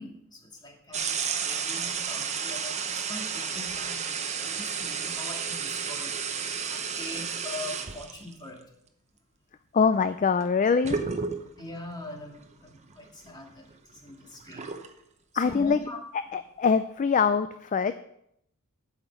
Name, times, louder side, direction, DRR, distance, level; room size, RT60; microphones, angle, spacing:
voice 1, 0.0-8.7 11.5-14.7 15.3-16.0, left 2 dB, 20° left, 0 dB, 2.2 m, -42 dB
sound 1, 0.9-8.3 10.4-10.5 10.8-11.7 12.4-12.5 12.9-14.9, right 6 dB, 30° right, 0.9 m, -32 dB
voice 2, 9.7-11.0 15.4-15.8 16.3-18.0, left 5 dB, 35° left, 11 dB, 0.4 m, -23 dB
8.6 x 5.9 x 8.1 m, 0.74 s
head